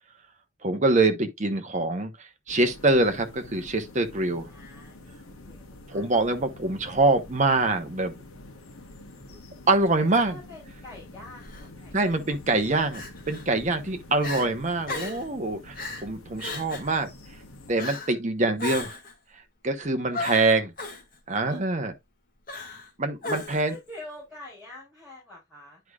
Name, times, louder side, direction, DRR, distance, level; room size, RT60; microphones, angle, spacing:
voice 1, 0.6-4.5 5.9-8.1 9.7-10.4 11.9-17.1 17.7-19.0 19.6-20.7 21.3-21.9 23.0-23.8, right 2 dB, 35° right, 0.9 m, -25 dB
sound 1, 2.5-17.8, left 2 dB, 80° left, 1.4 m, -47 dB
voice 2, 4.5-5.1 5.4-6.0 9.3-9.4 10.0-12.0 13.7-13.9 21.4-21.6 23.3-25.8, left 2 dB, 5° right, 4.7 m, -46 dB
Crying sobbing, 11.4-11.7 12.9-13.4 13.9-14.0 14.2-14.5 14.9-15.3 15.7-16.1 16.4-16.9 17.8-18.1 18.6-19.1 20.1-21.0 22.5-22.9 23.2-23.7, left 3 dB, 40° left, 2.1 m, -35 dB
10.5 x 4.9 x 2.4 m
head